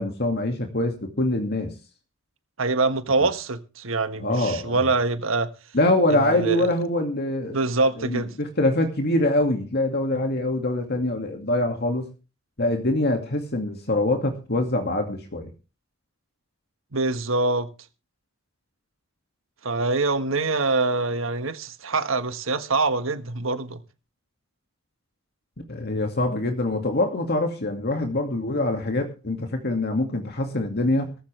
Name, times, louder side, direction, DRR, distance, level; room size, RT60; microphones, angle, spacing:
voice 1, 0.0-1.7 4.2-4.8 5.7-7.6 8.0-12.1 12.6-15.5 25.7-31.2, left 1 dB, 55° left, 2.3 m, -24 dB
voice 2, 2.6-5.5 6.1-6.7 7.5-8.3 16.9-17.7 19.6-23.8, right 3 dB, 85° right, 1.6 m, -24 dB
17.5 x 15.0 x 3.4 m
head